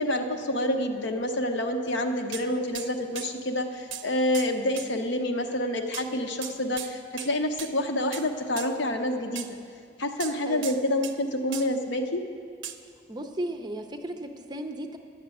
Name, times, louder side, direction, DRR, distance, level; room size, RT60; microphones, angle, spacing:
voice 1, 0.0-9.5 10.0-12.2, left 1 dB, 65° left, 5 dB, 0.8 m, -28 dB
sound 1, 2.3-2.5 2.8-2.9 3.2-3.3 3.9-4.1 4.3-4.5 4.8-4.9 5.9-6.1 6.4-6.9 7.2-7.3 7.6-7.7 8.1-8.3 8.6-8.7 9.4-9.5 10.2-11.2 11.5-11.7 12.6-12.8, right 10 dB, 80° right, 0.6 m, -37 dB
voice 2, 13.1-15.0, right 1 dB, 20° right, 6 dB, 0.5 m, -35 dB
10.0 x 6.7 x 9.0 m, 2.2 s
head